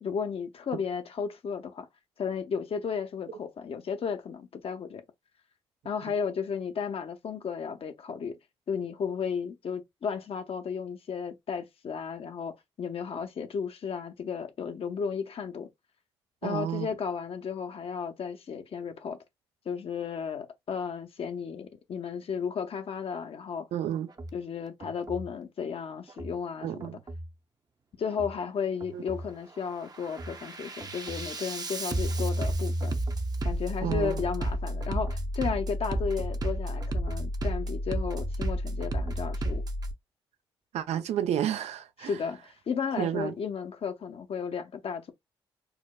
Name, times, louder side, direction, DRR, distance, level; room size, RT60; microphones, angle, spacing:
voice 1, 0.0-1.9 2.2-5.0 5.8-8.4 8.7-15.7 16.4-19.2 19.7-23.7 24.3-26.9 28.0-33.0 33.4-39.6 42.0-45.1, left 6 dB, 55° left, 0.7 m, -34 dB
voice 2, 16.4-16.9 23.7-24.1 26.6-26.9 28.9-29.0 33.8-34.2 40.7-42.1 43.0-43.3, right 10 dB, 65° right, 0.4 m, -31 dB
Bass drum, 24.1-24.3 24.8-25.3 26.1-26.3 26.8-27.3 28.1-28.3 28.8-29.3 29.7-39.9, right 1 dB, 35° right, 0.7 m, -32 dB
4.8 x 2.0 x 2.3 m
hypercardioid pair, 40°, 12 cm